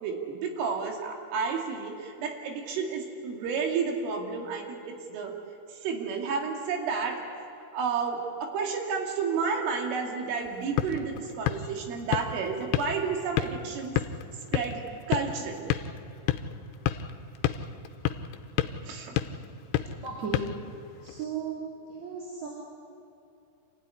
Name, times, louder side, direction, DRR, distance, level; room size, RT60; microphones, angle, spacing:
voice 1, 0.0-5.4 5.7-7.2 7.7-14.0 14.5-14.8 15.1-15.7 18.9-19.1, right 5 dB, 85° right, 2 dB, 5.1 m, -31 dB
sound 1, 10.4-21.2, left 11 dB, 85° left, 3.1 m, -32 dB
voice 2, 20.0-20.5 21.0-21.6 21.9-22.5, right 5 dB, 40° right, -4 dB, 4.0 m, -35 dB
27.0 x 16.0 x 9.9 m, 2.7 s
omnidirectional pair, 5.6 m